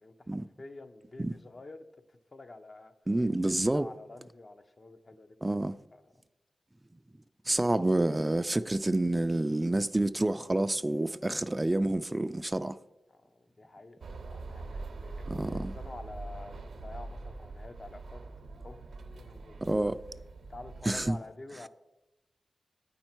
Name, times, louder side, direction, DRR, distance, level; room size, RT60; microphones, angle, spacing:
voice 1, 0.0-2.9 3.4-6.0 13.1-18.2 18.6-18.8 19.1-19.8 20.5-21.7, left 2 dB, 50° left, 0.7 m, -49 dB
voice 2, 3.1-3.9 5.4-5.8 7.5-12.8 15.3-15.7 19.6-20.0 20.9-21.2, right 1 dB, 25° right, 0.3 m, -28 dB
sound 1, 14.0-21.1, right 3 dB, 80° right, 0.7 m, -43 dB
8.5 x 5.4 x 4.4 m
cardioid pair, 45°, 0 cm